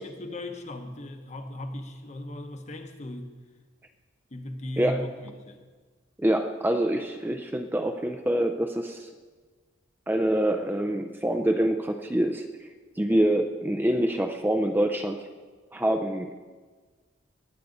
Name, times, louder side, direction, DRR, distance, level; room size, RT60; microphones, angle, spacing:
voice 1, 0.0-3.3 4.3-5.6, left 1 dB, 35° left, 6 dB, 1.0 m, -37 dB
voice 2, 6.2-9.1 10.1-12.5 13.0-15.3 15.7-16.4, right 1 dB, 10° right, 6 dB, 0.4 m, -25 dB
20.5 x 8.3 x 3.9 m, 1.4 s
head